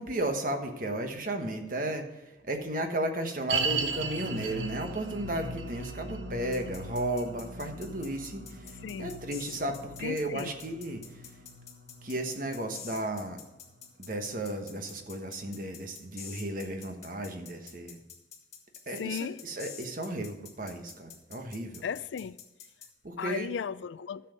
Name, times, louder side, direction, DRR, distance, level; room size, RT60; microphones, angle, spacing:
voice 1, 0.0-11.0 12.0-13.4 14.0-18.0 18.9-21.8 23.0-23.5, right 1 dB, 45° right, 1.2 m, -34 dB
sound 1, 3.5-14.8 15.0-15.1 15.8-15.9, right 4 dB, 85° right, 1.2 m, -38 dB
sound 2, 6.5-22.9, left 8 dB, 35° left, 1.6 m, -47 dB
voice 2, 8.8-9.2 10.0-10.5 19.0-19.4 21.8-22.4 23.2-24.2, left 7 dB, 75° left, 0.4 m, -35 dB
11.5 x 7.0 x 5.3 m
head